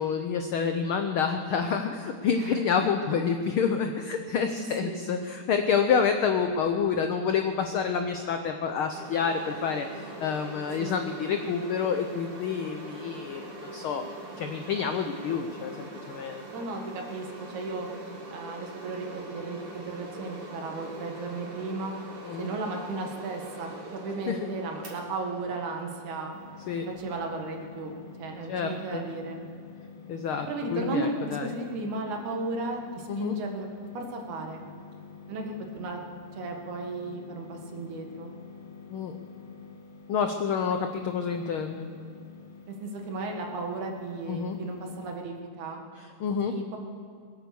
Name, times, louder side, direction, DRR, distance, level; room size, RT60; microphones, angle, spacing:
voice 1, 0.0-14.1 14.4-16.4 22.2-22.5 24.3-24.5 26.7-26.9 28.5-29.0 30.1-31.5 33.1-33.3 38.9-39.2 40.1-41.9 44.3-44.6 46.0-46.6, left 6 dB, 85° left, 6 dB, 1.1 m, -28 dB
sound 1, 8.9-27.4, right 1 dB, 50° right, 3.5 m, -43 dB
voice 2, 16.5-17.9 18.3-21.9 22.4-26.3 26.9-27.9 28.2-29.4 30.5-33.7 33.9-34.6 35.3-36.0 36.3-38.3 42.7-45.8 46.4-46.8, right 3 dB, 85° right, 2 dB, 3.1 m, -35 dB
sound 2, 26.3-45.1, left 6 dB, 60° left, 3.4 m, -48 dB
21.5 x 9.1 x 6.9 m, 2.3 s
omnidirectional pair, 3.3 m